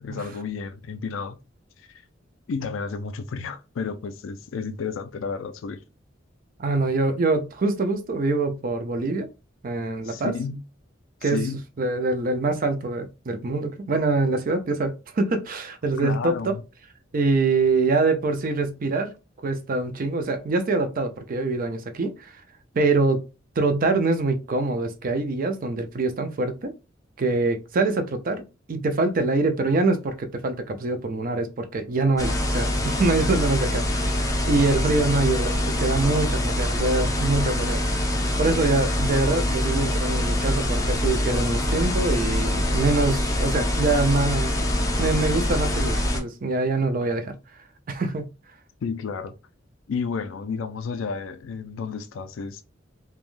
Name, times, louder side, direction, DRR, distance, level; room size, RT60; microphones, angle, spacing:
voice 1, 0.0-1.4 1.8-1.9 2.5-5.8 10.0-10.6 11.2-11.6 16.0-16.6 48.8-49.3 49.9-52.6, left 5 dB, 90° left, 0.4 m, -31 dB
voice 2, 6.6-9.3 9.6-10.3 11.2-11.5 11.8-16.3 17.1-19.1 19.4-22.3 22.7-23.2 23.6-26.7 27.2-28.4 28.7-37.8 38.4-44.6 45.0-47.3 47.9-48.3, right 3 dB, 45° right, 0.5 m, -24 dB
sound 1, 32.2-46.2, left 1 dB, 20° left, 0.5 m, -24 dB
3.3 x 2.3 x 2.5 m
head